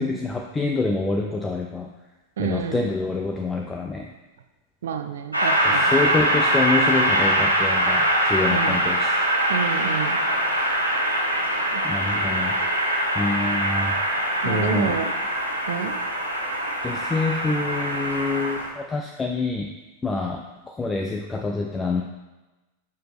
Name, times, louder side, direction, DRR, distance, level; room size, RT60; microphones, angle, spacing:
voice 1, 0.0-1.9 2.4-4.1 5.6-9.2 11.8-12.9 13.1-14.0 14.4-15.0 16.8-19.7 20.0-22.0, left 3 dB, 15° left, 2 dB, 0.5 m, -26 dB
voice 2, 2.4-2.8 4.8-5.9 8.5-8.8 9.5-10.2 11.7-11.8 14.4-15.1 15.7-16.0, right 7 dB, 60° right, 8 dB, 0.5 m, -29 dB
Train, 5.3-18.7, right 1 dB, 85° right, 1.1 m, -23 dB
6.7 x 6.0 x 3.2 m, 1.1 s
figure-of-eight pair, 90°, 0 cm